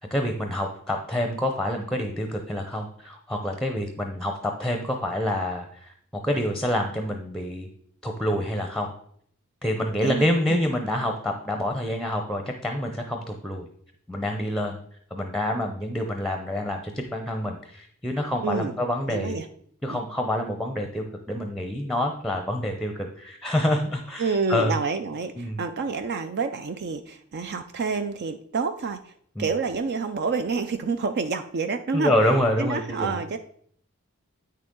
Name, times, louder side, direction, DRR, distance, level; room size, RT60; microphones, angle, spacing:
voice 1, 0.1-7.7 8.0-8.9 9.6-13.7 14.1-14.8 15.1-19.4 19.8-24.7 25.4-25.6 29.4-29.5 31.9-33.2, left 1 dB, ahead, 4 dB, 0.7 m, -27 dB
voice 2, 10.0-10.6 18.4-18.8 19.1-19.5 19.9-20.0 24.2-29.1 29.4-32.1 32.6-33.4, right 4 dB, 50° right, 9 dB, 0.5 m, -28 dB
8.6 x 6.5 x 3.7 m, 0.63 s
head